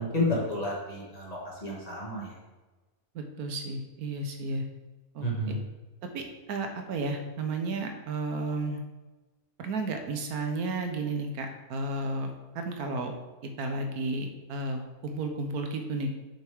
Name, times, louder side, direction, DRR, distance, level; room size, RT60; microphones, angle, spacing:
voice 1, 0.0-2.3 5.2-5.6, left 1 dB, 25° left, -6 dB, 2.2 m, -31 dB
voice 2, 3.1-4.6 5.1-5.6 6.1-8.8 9.6-13.1 13.6-16.1, right 2 dB, 85° right, 5 dB, 1.4 m, -33 dB
7.3 x 5.8 x 3.6 m, 1.2 s
omnidirectional pair, 1.5 m